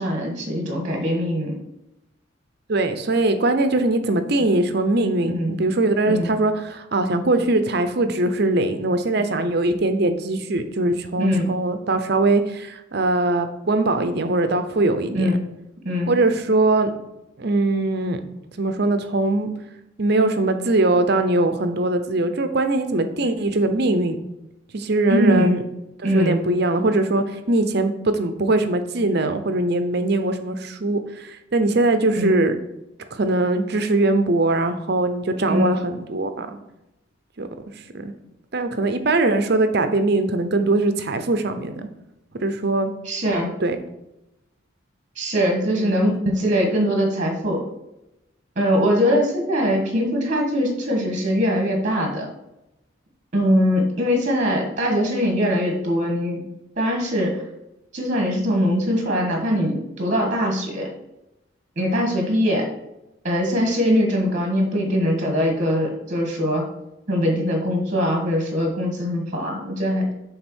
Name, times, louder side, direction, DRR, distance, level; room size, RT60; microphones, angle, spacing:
voice 1, 0.0-1.6 5.3-5.5 6.1-6.3 11.2-11.5 15.1-15.4 15.8-16.2 25.1-25.6 26.0-26.4 32.1-32.4 35.5-35.7 43.0-43.5 45.2-47.6 48.5-52.3 53.3-56.4 56.8-57.4 57.9-60.9 61.8-62.7 63.2-66.7 67.1-70.1, equal, 35° right, 2 dB, 1.5 m, -22 dB
voice 2, 2.7-15.3 16.1-16.9 17.4-18.2 18.6-19.5 20.0-24.2 24.7-25.6 26.1-32.6 33.1-36.6 37.4-37.5 37.9-38.1 38.5-41.9 42.4-42.9 43.6-43.8 45.7-46.0, right 2 dB, 55° right, 9 dB, 0.7 m, -21 dB
7.8 x 3.6 x 6.2 m, 0.90 s
head